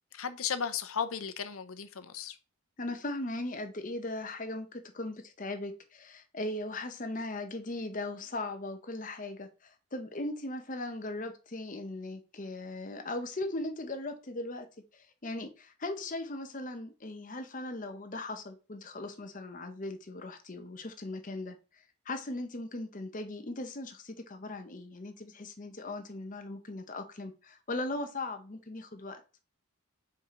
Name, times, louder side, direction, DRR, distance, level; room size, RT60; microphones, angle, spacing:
voice 1, 0.1-2.4, left 7 dB, 70° left, 0.7 m, -35 dB
voice 2, 2.8-14.7 14.9-21.5 22.1-29.2, left 2 dB, 35° left, 0.8 m, -38 dB
5.7 x 4.9 x 3.7 m
head